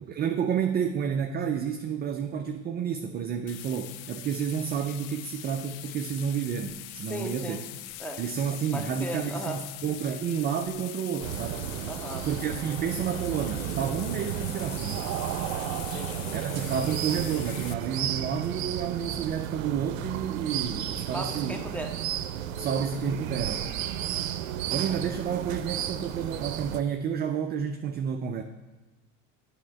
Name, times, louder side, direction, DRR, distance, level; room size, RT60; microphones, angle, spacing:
voice 1, 0.0-7.6 8.2-11.7 12.2-15.0 16.3-21.6 22.6-23.6 24.7-28.4, right 7 dB, 25° right, 6 dB, 0.4 m, -30 dB
sound 1, 3.5-17.7, left 14 dB, 50° left, 0.4 m, -42 dB
voice 2, 7.1-7.6 8.0-8.2 8.7-9.6 11.8-12.3 15.9-16.2 21.1-21.9, equal, 5° left, 4 dB, 0.9 m, -36 dB
sound 2, 11.2-26.8, right 10 dB, 90° right, 0.5 m, -33 dB
9.1 x 3.5 x 5.6 m, 1.1 s
hypercardioid pair, 90°, 39 cm